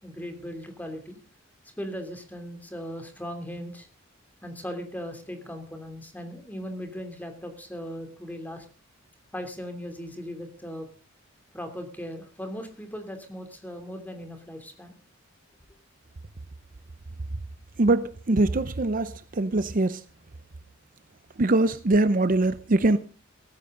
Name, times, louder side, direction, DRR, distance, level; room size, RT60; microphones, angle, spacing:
voice 1, 0.0-1.2 1.8-3.9 4.4-8.7 9.3-10.9 11.5-15.0, equal, 10° left, 3.0 m, -38 dB
voice 2, 17.8-20.0 21.4-23.0, right 2 dB, 40° right, 0.6 m, -22 dB
17.0 x 15.0 x 3.8 m
head